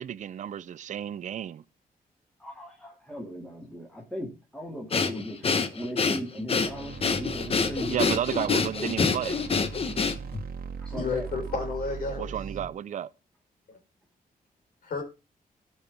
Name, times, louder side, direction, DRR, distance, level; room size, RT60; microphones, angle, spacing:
voice 1, 0.0-1.6 7.9-9.3 12.2-13.1, right 10 dB, 55° right, 0.5 m, -32 dB
voice 2, 2.4-8.0 10.8-11.3, equal, 5° left, 2.1 m, -37 dB
Breathing, 4.9-10.4, left 5 dB, 40° left, 1.0 m, -27 dB
sound 1, 6.5-12.7, right 6 dB, 80° right, 1.2 m, -40 dB
voice 3, 11.0-12.3 13.7-13.8 14.8-15.0, left 4 dB, 75° left, 3.9 m, -31 dB
16.5 x 5.6 x 3.4 m
wide cardioid pair, 145°, 15 cm